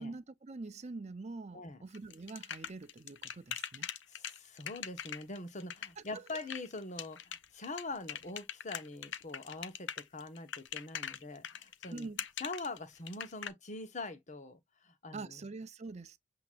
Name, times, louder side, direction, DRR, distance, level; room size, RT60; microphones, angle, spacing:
voice 1, 0.0-3.9 6.1-6.2 11.9-12.2 15.1-16.2, right 3 dB, 35° right, 0.5 m, -45 dB
sound 1, 1.9-13.5, left 9 dB, 65° left, 0.7 m, -42 dB
voice 2, 4.1-12.1 12.4-15.4, left 2 dB, 40° left, 1.1 m, -44 dB
7.8 x 2.9 x 2.4 m
head